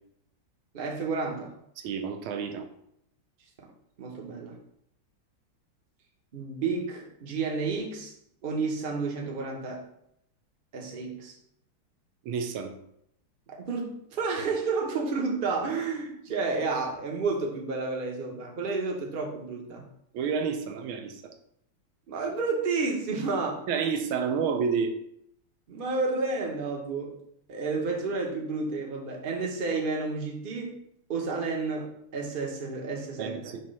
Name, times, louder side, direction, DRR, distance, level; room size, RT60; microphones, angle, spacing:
voice 1, 0.7-1.5 3.6-3.7 4.0-4.6 6.3-8.1 8.4-9.9 10.7-11.3 13.5-19.9 22.1-23.6 25.7-27.2 27.5-30.7 31.1-33.6, right 4 dB, 35° right, 0 dB, 0.9 m, -31 dB
voice 2, 1.8-2.7 12.2-12.7 20.1-21.3 23.7-24.9 33.2-33.6, right 6 dB, 80° right, 7 dB, 1.5 m, -30 dB
6.0 x 2.9 x 5.4 m, 0.75 s
omnidirectional pair, 2.3 m